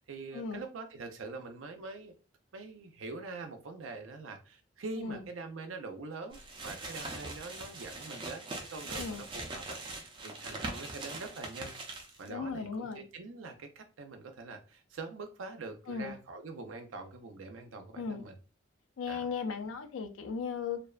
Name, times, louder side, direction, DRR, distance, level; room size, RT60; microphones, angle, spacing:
voice 1, 0.0-2.1 2.5-11.7 12.2-18.4 19.1-19.3, right 3 dB, 85° right, 0.5 m, -44 dB
sound 1, 6.3-12.3, right 2 dB, 25° right, 0.4 m, -42 dB
voice 2, 12.3-13.1 15.9-16.1 18.0-18.2 19.0-20.8, left 5 dB, 85° left, 0.4 m, -36 dB
2.5 x 2.1 x 2.3 m
head